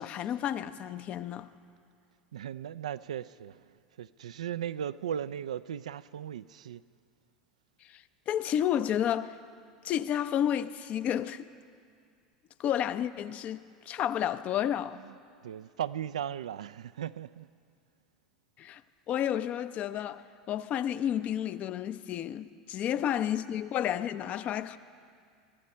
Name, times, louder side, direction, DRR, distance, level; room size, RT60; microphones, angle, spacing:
voice 1, 0.0-1.5 7.9-9.4 9.8-11.5 12.6-13.6 13.9-15.0 18.6-18.8 19.1-24.8, left 10 dB, 45° left, 0.6 m, -31 dB
voice 2, 2.3-6.8 14.9-17.5 22.9-23.3, right 9 dB, 80° right, 0.3 m, -37 dB
23.0 x 14.0 x 4.4 m
hypercardioid pair, 85°, 3 cm